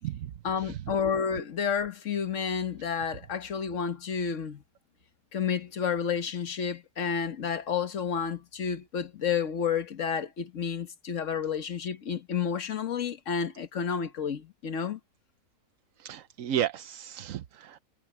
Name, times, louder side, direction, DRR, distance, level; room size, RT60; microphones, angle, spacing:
voice 1, 0.4-4.6 5.3-15.0, left 7 dB, 65° left, 1.6 m, -30 dB
voice 2, 16.0-17.8, right 10 dB, 75° right, 1.1 m, -33 dB
omnidirectional pair, 1.4 m